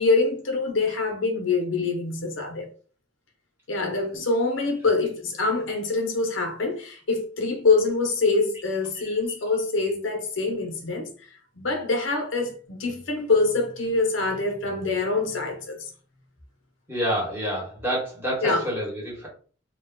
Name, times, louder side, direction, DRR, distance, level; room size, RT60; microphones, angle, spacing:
voice 1, 0.0-2.7 3.7-11.1 11.6-15.9 18.4-18.6, left 3 dB, 70° left, 0.6 m, -25 dB
voice 2, 16.9-19.3, equal, 10° right, 1.0 m, -28 dB
2.3 x 2.1 x 3.5 m
head